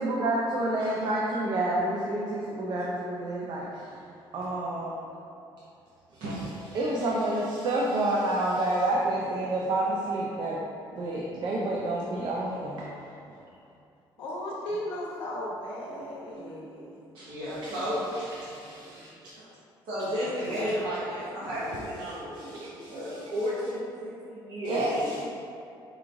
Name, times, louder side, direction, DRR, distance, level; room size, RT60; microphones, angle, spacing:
voice 1, 0.0-4.0 4.3-5.1 6.1-6.2 6.7-10.6 10.9-12.9 16.4-16.5 16.8-16.9 17.6-17.8 18.4-19.1 22.1-23.2 24.6-25.2, right 1 dB, 50° right, -4 dB, 0.5 m, -29 dB
voice 2, 6.2-6.5 17.1-18.0 19.4-19.5 19.8-25.2, equal, 70° right, -13 dB, 1.2 m, -33 dB
voice 3, 14.2-17.0, left 1 dB, 80° left, -6 dB, 1.0 m, -36 dB
4.9 x 3.0 x 2.6 m, 2.5 s
cardioid pair, 125°, 9 cm